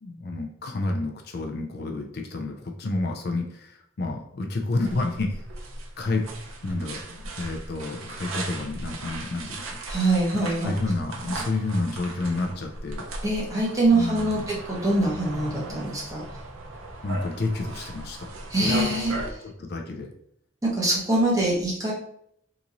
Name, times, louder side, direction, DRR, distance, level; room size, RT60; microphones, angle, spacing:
voice 1, 0.0-5.4 6.0-6.3 6.6-13.0 13.9-14.4 17.0-18.9 19.4-20.1, left 2 dB, 50° left, 2 dB, 0.4 m, -30 dB
sound 1, 4.8-19.3, right 2 dB, 85° right, 0.6 m, -37 dB
voice 2, 9.9-10.7 13.2-16.2 18.5-19.1 20.6-21.9, right 2 dB, 15° right, -5 dB, 0.9 m, -24 dB
2.9 x 2.6 x 3.7 m, 0.71 s
head